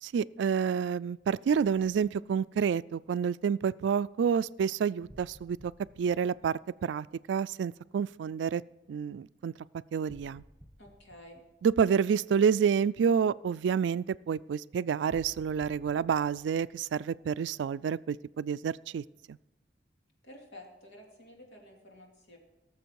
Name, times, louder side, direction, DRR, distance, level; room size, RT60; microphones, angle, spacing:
voice 1, 0.0-5.7 6.0-8.6 8.9-9.5 9.9-10.4 11.6-19.4, right 7 dB, 85° right, 18 dB, 0.3 m, -29 dB
sound 1, 5.1-7.2 10.1-12.1 15.1-17.6, equal, 10° right, 1.5 m, -55 dB
voice 2, 10.8-11.4 20.2-22.4, left 1 dB, 85° left, 0 dB, 2.6 m, -51 dB
18.0 x 7.1 x 4.7 m, 1.0 s
head